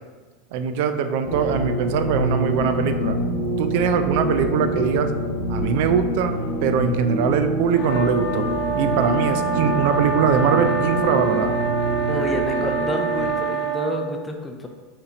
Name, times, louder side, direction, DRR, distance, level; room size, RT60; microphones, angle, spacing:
voice 1, 0.5-3.2 3.6-5.1 5.5-8.5 8.7-11.5, right 7 dB, 65° right, 8 dB, 0.4 m, -22 dB
sound 1, 1.2-13.3, equal, 75° left, 1.1 m, -26 dB
sound 2, 7.7-14.0, right 5 dB, 50° left, 0.9 m, -26 dB
voice 2, 12.1-14.7, equal, 15° left, 2 dB, 0.5 m, -29 dB
5.5 x 3.4 x 2.9 m, 1.4 s
hypercardioid pair, 90°, 0 cm